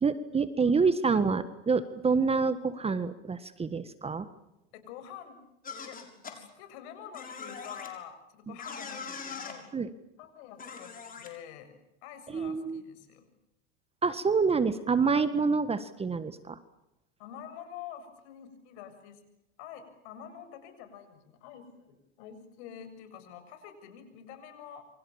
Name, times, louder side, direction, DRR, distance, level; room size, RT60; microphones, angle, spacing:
voice 1, 0.0-4.3 9.7-9.9 12.3-12.8 14.0-16.6, right 5 dB, 15° right, 13 dB, 1.5 m, -27 dB
voice 2, 0.5-0.9 4.7-5.4 5.8-6.0 6.3-9.7 10.2-11.7 12.0-13.3 17.2-19.2 19.6-24.9, left 9 dB, 65° left, 9 dB, 7.4 m, -47 dB
sound 1, 5.6-6.3 7.1-7.9 8.6-9.6 10.6-11.3, left 5 dB, 25° left, 6.8 m, -41 dB
28.5 x 25.5 x 7.2 m, 0.89 s
hypercardioid pair, 110°, 36 cm